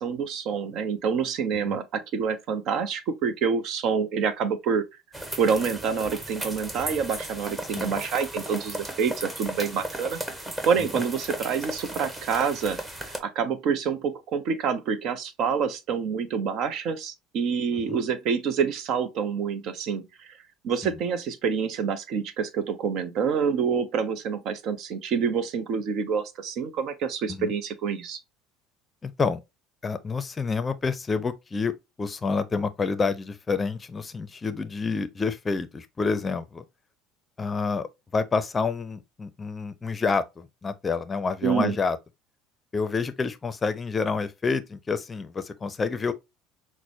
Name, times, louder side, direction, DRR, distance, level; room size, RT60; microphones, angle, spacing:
voice 1, 0.0-4.8 5.4-10.2 10.6-12.8 13.2-20.4 20.6-28.2 41.4-41.8, right 6 dB, 55° right, 0.6 m, -27 dB
sound 1, 5.1-13.2, right 1 dB, 15° right, 1.1 m, -35 dB
voice 2, 29.0-29.4 29.8-36.6 37.4-42.0 42.7-46.1, left 4 dB, 25° left, 0.5 m, -28 dB
5.9 x 2.1 x 2.7 m
hypercardioid pair, 70°, 0 cm